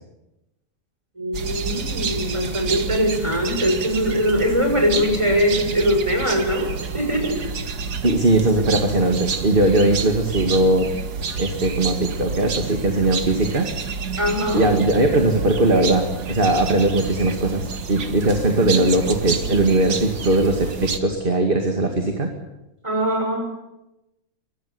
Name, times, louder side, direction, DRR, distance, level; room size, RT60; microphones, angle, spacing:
voice 1, 1.2-7.4 14.2-14.7 22.8-23.4, equal, 20° right, 3 dB, 6.5 m, -21 dB
sound 1, 1.3-21.0, right 5 dB, 85° right, 2.2 m, -29 dB
voice 2, 8.0-10.9 11.4-13.7 14.5-22.3, right 2 dB, 35° right, 4 dB, 2.4 m, -19 dB
23.5 x 19.5 x 9.6 m, 0.94 s
omnidirectional pair, 1.7 m